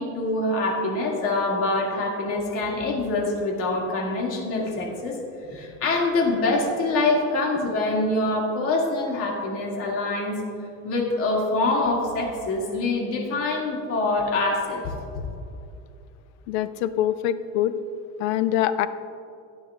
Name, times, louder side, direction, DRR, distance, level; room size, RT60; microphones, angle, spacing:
voice 1, 0.0-5.2 5.5-10.4 10.8-15.2, left 2 dB, 40° left, -1 dB, 2.2 m, -25 dB
voice 2, 16.5-17.7 18.2-18.9, left 12 dB, 85° left, 13 dB, 0.6 m, -24 dB
16.0 x 9.1 x 2.4 m, 2.7 s
cardioid pair, 155°, 33 cm